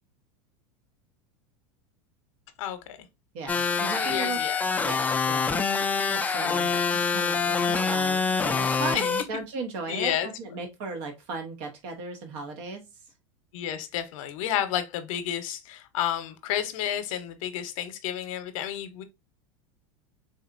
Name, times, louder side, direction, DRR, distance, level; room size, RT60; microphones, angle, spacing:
voice 1, 2.6-3.0 4.0-4.7 6.4-6.7 8.9-9.1 9.9-10.3 13.5-19.0, left 11 dB, 70° left, 0.7 m, -31 dB
voice 2, 3.3-4.4 4.8-5.7 6.1-6.7 7.1-12.8, right 3 dB, 65° right, 0.9 m, -36 dB
sound 1, 3.5-9.2, left 5 dB, 10° left, 0.3 m, -26 dB
3.9 x 2.8 x 2.4 m
supercardioid pair, 115°, 18 cm